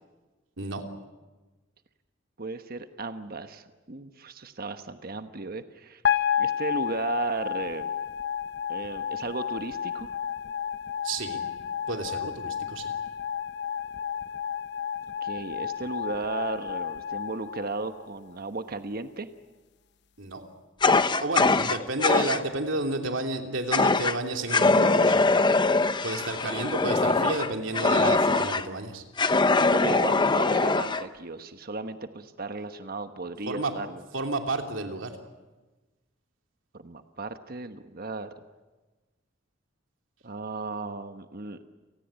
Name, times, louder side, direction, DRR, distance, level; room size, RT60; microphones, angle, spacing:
voice 1, 2.4-6.0 6.4-7.9 8.7-10.1 15.2-19.3 29.7-34.0 36.7-38.3 40.2-41.6, right 3 dB, 50° right, 9 dB, 1.2 m, -35 dB
sound 1, 6.0-18.3, left 8 dB, 60° left, 1.1 m, -31 dB
voice 2, 11.0-11.4 11.9-12.9 20.2-20.4 21.2-25.3 26.0-29.0 33.5-33.7 34.1-35.1, right 2 dB, 75° right, 4 dB, 3.0 m, -31 dB
Fire, 20.8-22.4 23.7-24.2 24.5-28.7 29.2-31.0, left 3 dB, 25° left, 0.8 m, -22 dB
29.5 x 19.0 x 8.9 m, 1.2 s
head